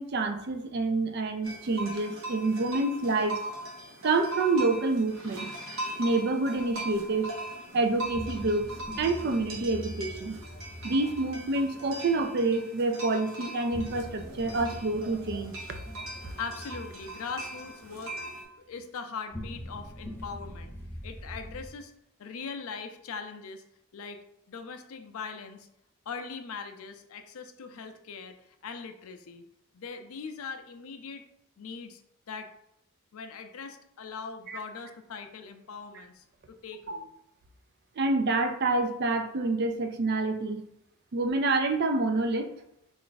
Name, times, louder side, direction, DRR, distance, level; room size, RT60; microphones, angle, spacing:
voice 1, 0.0-3.4 4.0-5.5 6.0-7.3 7.7-8.7 9.0-10.4 10.8-15.5 34.5-34.6 35.9-36.0 36.9-37.0 38.0-40.6 41.1-42.5, right 3 dB, 45° right, 7 dB, 0.4 m, -27 dB
sound 1, 1.4-18.4, right 1 dB, 65° right, 0.8 m, -40 dB
sound 2, 6.5-7.2 8.1-12.4 13.7-18.3 19.3-21.7, equal, 10° left, 0.5 m, -43 dB
voice 2, 16.4-18.2 18.6-20.7 21.0-21.9 22.2-23.6 23.9-24.2 24.5-25.7 26.1-28.4 28.6-29.4 29.7-31.2 31.6-32.0 32.3-32.5 33.1-37.1, left 5 dB, 70° left, 7 dB, 0.4 m, -40 dB
3.3 x 2.5 x 3.9 m, 0.80 s
head